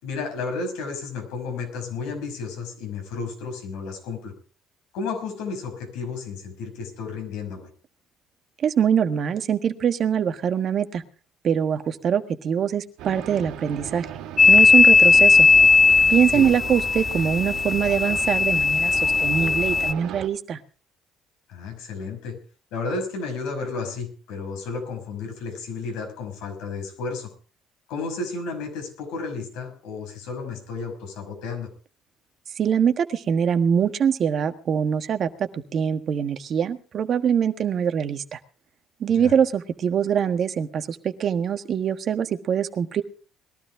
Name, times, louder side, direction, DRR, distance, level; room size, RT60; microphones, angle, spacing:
voice 1, 0.0-4.3 4.9-7.7 16.3-16.5 21.5-22.4 22.7-27.3 27.9-31.7 39.1-39.3, left 4 dB, 85° left, 4 dB, 5.6 m, -32 dB
voice 2, 8.6-11.0 11.4-14.1 14.5-15.5 16.1-20.6 32.5-38.4 39.0-43.0, right 8 dB, 55° right, 8 dB, 1.5 m, -23 dB
sound 1, 13.0-20.3, right 10 dB, 80° right, 2.1 m, -37 dB
sound 2, 14.4-19.9, left 4 dB, 35° left, 0.9 m, -17 dB
21.0 x 12.5 x 3.7 m, 0.37 s
supercardioid pair, 80°, 0 cm